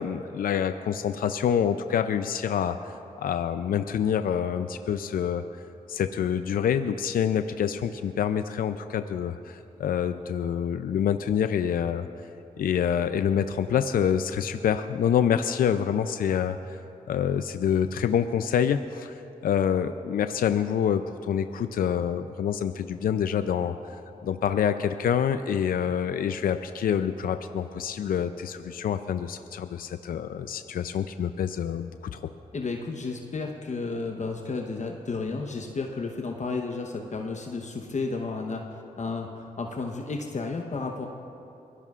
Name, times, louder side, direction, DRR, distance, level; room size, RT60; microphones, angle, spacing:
voice 1, 0.0-5.4 5.9-12.1 12.6-16.8 17.1-32.3, left 8 dB, 70° left, 10 dB, 0.5 m, -27 dB
voice 2, 32.5-41.1, left 3 dB, 50° left, 2 dB, 1.0 m, -32 dB
23.5 x 16.5 x 2.5 m, 3.0 s
supercardioid pair, 40°, 15 cm